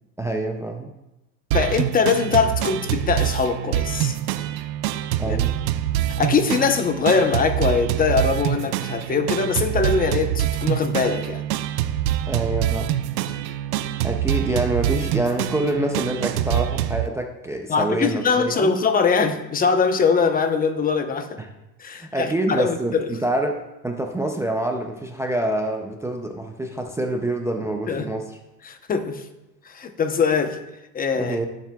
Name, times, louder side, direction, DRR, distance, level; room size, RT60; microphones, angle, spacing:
voice 1, 0.2-0.9 5.2-5.6 12.3-13.0 14.0-18.7 21.4-21.5 21.9-28.3 31.2-31.5, right 1 dB, 5° right, 3 dB, 0.3 m, -26 dB
voice 2, 1.5-4.1 5.3-5.4 6.2-11.4 17.7-21.4 21.8-23.1 27.9-28.2 28.6-29.3 29.7-30.6 30.9-31.4, left 5 dB, 20° left, 8 dB, 0.8 m, -22 dB
sound 1, 1.5-17.1, right 12 dB, 85° right, 0.7 m, -25 dB
19.0 x 7.4 x 2.3 m, 0.96 s
supercardioid pair, 120°, 49 cm